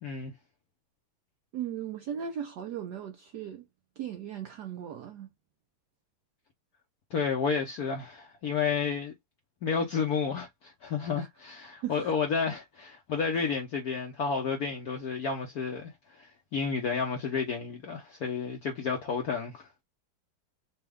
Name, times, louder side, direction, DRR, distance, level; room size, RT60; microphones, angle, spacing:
voice 1, 0.0-0.3 7.1-9.1 9.6-16.3 16.5-19.7, left 5 dB, 70° left, 0.9 m, -31 dB
voice 2, 1.5-3.6 4.0-5.3 11.1-11.3 11.8-12.1 13.3-13.5, right 9 dB, 80° right, 0.9 m, -37 dB
4.2 x 2.2 x 3.4 m
omnidirectional pair, 2.4 m